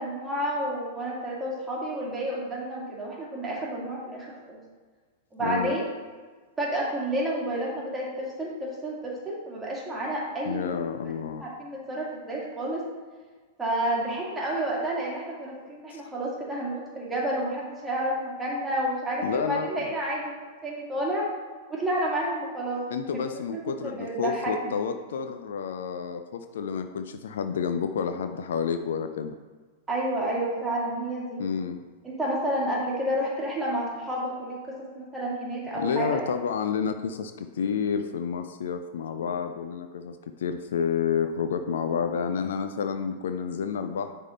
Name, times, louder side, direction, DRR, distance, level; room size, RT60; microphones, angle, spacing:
voice 1, 0.0-4.6 5.3-5.9 6.6-10.8 11.4-12.8 13.6-20.2 20.6-21.3 21.7-22.9 23.1-23.4 23.8-24.7 29.9-31.4 32.0-36.2, right 1 dB, 10° right, -4 dB, 2.1 m, -30 dB
voice 2, 5.4-5.7 10.4-11.4 15.9-16.0 19.2-19.9 22.9-29.3 31.4-31.8 35.7-44.1, left 6 dB, 60° left, 8 dB, 0.4 m, -30 dB
9.6 x 3.7 x 4.2 m, 1.4 s
figure-of-eight pair, 95°, 0 cm